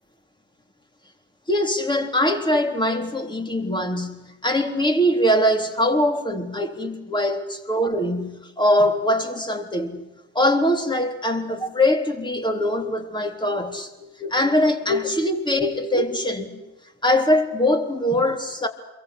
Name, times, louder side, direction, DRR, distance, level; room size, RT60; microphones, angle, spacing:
voice 1, 1.5-10.0 10.3-16.6 17.0-18.7, left 1 dB, 10° left, 3.7 m, -22 dB
28.0 x 23.0 x 8.5 m
hypercardioid pair, 70°, 40 cm